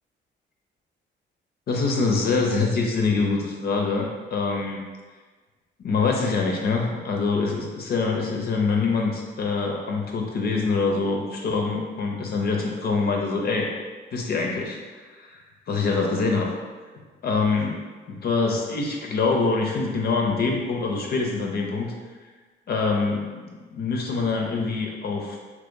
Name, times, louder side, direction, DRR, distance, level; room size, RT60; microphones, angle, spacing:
voice 1, 1.7-4.8 5.8-13.7 14.1-14.8 15.1-15.4 15.7-16.5 17.2-17.8 18.1-21.9 22.7-25.4, left 4 dB, 50° left, 0 dB, 0.5 m, -25 dB
2.9 x 2.5 x 3.7 m, 1.4 s
cardioid pair, 90°, 20 cm